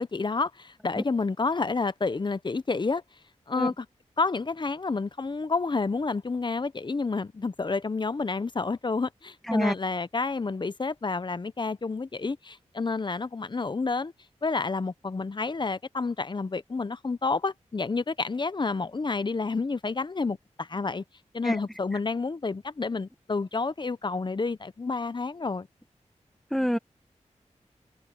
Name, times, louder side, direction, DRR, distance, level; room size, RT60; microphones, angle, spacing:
voice 1, 0.0-3.0 3.5-3.9 4.2-14.1 14.4-21.0 21.3-25.7, left 4 dB, 40° left, 0.8 m, -29 dB
voice 2, 3.6-3.7 9.5-9.7 21.4-21.6 26.5-26.8, equal, ahead, 1.5 m, -25 dB
wide cardioid pair, 65°, 12 cm